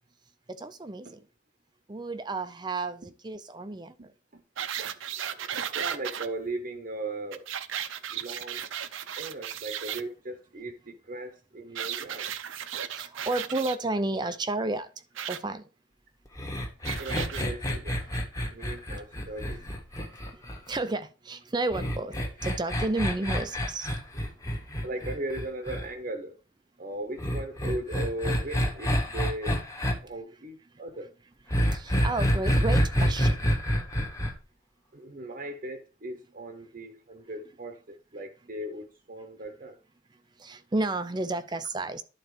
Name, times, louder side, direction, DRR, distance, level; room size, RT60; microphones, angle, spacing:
voice 1, 0.5-1.2 1.9-4.1 12.9-14.9 15.3-15.7 18.6-18.7 20.3-20.4 20.7-23.9 31.7-33.5 40.4-42.0, right 2 dB, 20° right, 0.5 m, -32 dB
sound 1, 4.6-6.3 7.3-10.0 11.7-13.8 15.1-15.4 16.8-17.4 18.1-18.2, right 9 dB, 75° right, 0.6 m, -35 dB
voice 2, 5.1-7.5 8.1-8.6 9.2-12.3 17.0-18.2 18.5-19.6 24.8-26.4 26.8-29.6 30.0-31.1 34.9-39.8, right 1 dB, 40° right, 0.8 m, -38 dB
sound 2, 16.4-20.8 21.7-25.8 27.2-29.9 31.5-34.3, equal, 15° left, 1.3 m, -27 dB
11.0 x 4.1 x 4.9 m
head